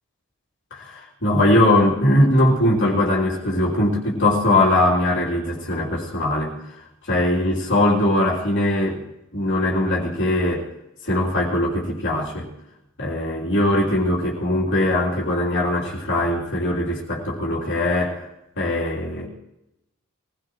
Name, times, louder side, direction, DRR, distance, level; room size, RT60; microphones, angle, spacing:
voice 1, 0.7-6.5 7.0-9.0 9.3-10.7 11.0-12.5 13.0-18.2 18.6-19.3, left 1 dB, 60° left, -5 dB, 3.2 m, -21 dB
22.5 x 17.0 x 3.1 m, 0.87 s
head